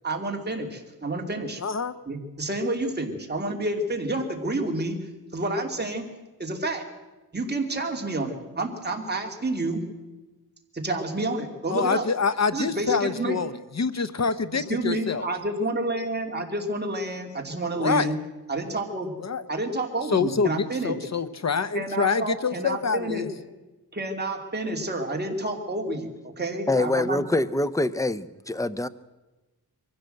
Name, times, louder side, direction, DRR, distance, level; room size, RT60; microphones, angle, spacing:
voice 1, 0.0-1.6 2.1-5.0 5.3-6.0 6.4-6.8 7.3-9.8 10.7-12.0 12.5-13.4 14.5-18.2 18.5-19.1 19.5-21.0 21.7-23.3 23.9-27.2, right 2 dB, 25° right, 2 dB, 2.7 m, -29 dB
voice 2, 1.6-1.9 11.7-15.3 17.7-18.1 19.2-19.4 20.1-23.3, left 5 dB, 45° left, 14 dB, 0.8 m, -26 dB
voice 3, 26.7-28.9, left 2 dB, 10° left, 14 dB, 0.6 m, -25 dB
23.0 x 15.5 x 7.8 m, 1.1 s
wide cardioid pair, 125°, 38 cm